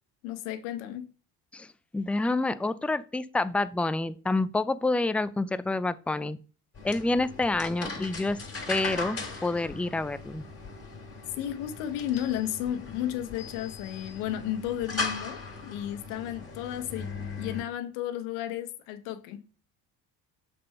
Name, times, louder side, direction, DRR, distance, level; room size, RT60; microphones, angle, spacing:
voice 1, 0.2-1.1 11.4-19.4, left 11 dB, 85° left, 1.2 m, -33 dB
voice 2, 1.9-6.4 6.8-8.4 8.7-10.4, left 2 dB, 5° left, 0.4 m, -28 dB
sound 1, 6.7-17.6, left 3 dB, 30° left, 3.1 m, -38 dB
6.3 x 4.4 x 5.7 m
supercardioid pair, 70°, 47 cm